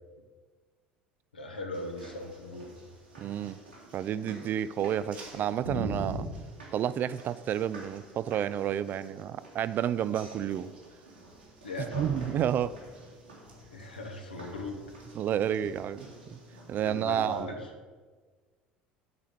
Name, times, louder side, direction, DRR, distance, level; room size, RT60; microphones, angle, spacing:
voice 1, 1.3-2.7 11.6-12.1 13.7-14.8 16.8-17.7, left 2 dB, 80° left, 3 dB, 1.2 m, -38 dB
sound 1, 1.7-17.4, right 1 dB, 85° right, 2.1 m, -45 dB
voice 2, 3.2-3.6 3.9-6.3 6.7-10.7 11.9-12.8 15.1-16.4 16.7-17.5, right 10 dB, 40° right, 15 dB, 0.4 m, -30 dB
sound 2, 11.9-17.8, left 4 dB, 55° left, 2.2 m, -58 dB
8.1 x 4.9 x 7.3 m, 1.4 s
figure-of-eight pair, 65°, 5 cm